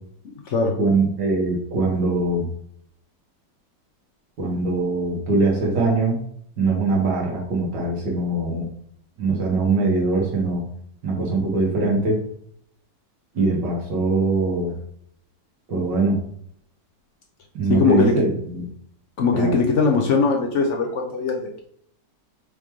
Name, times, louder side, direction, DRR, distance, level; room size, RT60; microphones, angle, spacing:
voice 1, 0.2-0.8 17.7-18.1 19.2-21.6, left 4 dB, 65° left, 2 dB, 0.7 m, -21 dB
voice 2, 0.8-2.5 4.4-6.2 6.6-8.7 9.2-10.6 11.0-12.2 13.3-14.7 15.7-16.2 17.5-18.7 19.3-19.5, right 3 dB, 90° right, -2 dB, 2.1 m, -22 dB
4.9 x 3.1 x 3.5 m, 0.68 s
omnidirectional pair, 1.9 m